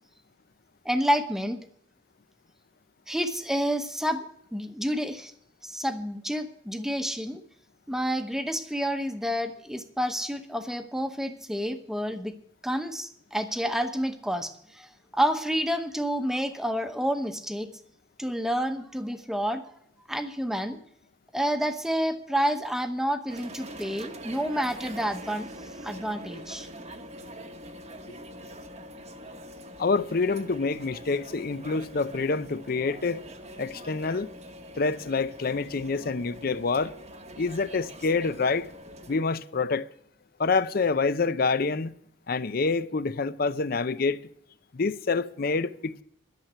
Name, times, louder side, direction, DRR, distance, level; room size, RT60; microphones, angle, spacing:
voice 1, 0.8-1.6 3.1-4.2 4.5-5.3 5.6-7.4 7.9-12.3 12.6-17.7 18.2-19.6 20.1-20.8 21.3-25.5 25.8-26.7, equal, ahead, 0.9 m, -29 dB
sound 1, 23.3-39.2, equal, 35° right, 1.0 m, -44 dB
voice 2, 29.8-33.2 33.6-34.3 34.8-36.9 37.4-38.7 39.1-39.9 40.4-41.9 42.3-44.2 44.7-46.0, left 4 dB, 50° left, 0.5 m, -27 dB
12.0 x 7.3 x 7.9 m
head